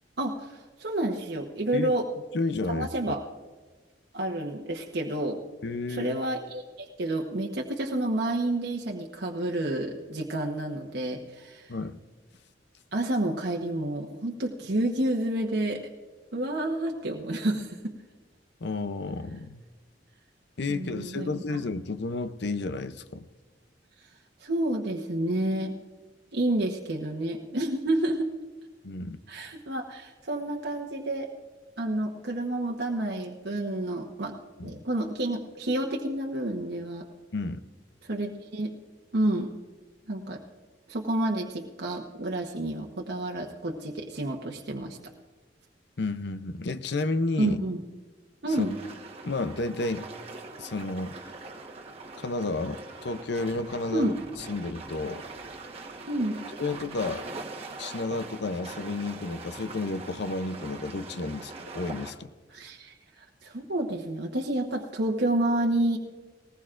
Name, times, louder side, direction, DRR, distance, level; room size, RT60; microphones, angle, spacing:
voice 1, 0.2-2.0 2.7-3.2 4.1-5.4 5.9-11.7 12.9-15.8 16.3-17.9 20.7-21.6 24.4-25.7 26.3-28.3 29.3-31.3 31.8-34.3 34.6-37.0 38.0-38.7 39.1-39.5 40.1-40.4 40.9-45.0 47.4-47.8 48.4-48.8 53.9-54.2 56.1-56.4 62.5-66.0, right 1 dB, 65° right, 0 dB, 1.1 m, -29 dB
voice 2, 2.3-3.1 5.6-6.2 11.7-12.0 18.6-19.6 20.6-23.3 28.8-29.2 34.6-34.7 37.3-37.6 46.0-47.6 48.6-48.8 49.2-50.1 50.6-51.2 52.2-54.1 54.5-55.2 56.6-57.3 57.8-62.3, left 3 dB, 65° left, 11 dB, 0.6 m, -31 dB
sound 1, 48.5-62.1, right 3 dB, 35° right, 1.3 m, -42 dB
19.5 x 19.0 x 2.5 m, 1.3 s
head